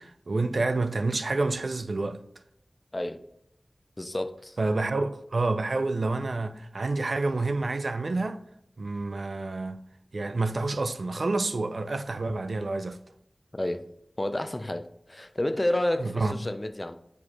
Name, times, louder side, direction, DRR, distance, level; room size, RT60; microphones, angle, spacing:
voice 1, 0.0-2.2 4.6-8.4 8.8-9.8 10.1-13.0 16.0-16.3, right 3 dB, 75° right, 0.3 m, -28 dB
voice 2, 2.9-3.2 4.0-4.6 13.5-13.9 14.2-17.0, left 1 dB, 30° left, 0.4 m, -30 dB
4.9 x 4.6 x 4.1 m
wide cardioid pair, 60°, 0 cm